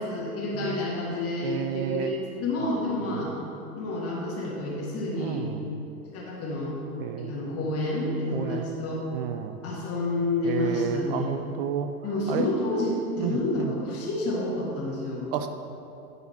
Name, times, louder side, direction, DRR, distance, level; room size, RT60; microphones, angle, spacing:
voice 1, 0.0-3.4 3.7-5.4 6.1-6.8 7.2-9.0 9.6-11.3 12.0-15.3, left 2 dB, 30° left, -3 dB, 1.6 m, -29 dB
voice 2, 1.4-2.1 2.6-2.7 3.0-3.3 5.2-5.7 7.0-7.4 8.3-8.7 9.1-9.6 10.4-11.9 12.3-12.5 13.2-13.7 15.3-15.5, right 9 dB, 35° right, 7 dB, 0.4 m, -31 dB
10.5 x 4.0 x 4.3 m, 2.9 s
figure-of-eight pair, 95°, 49 cm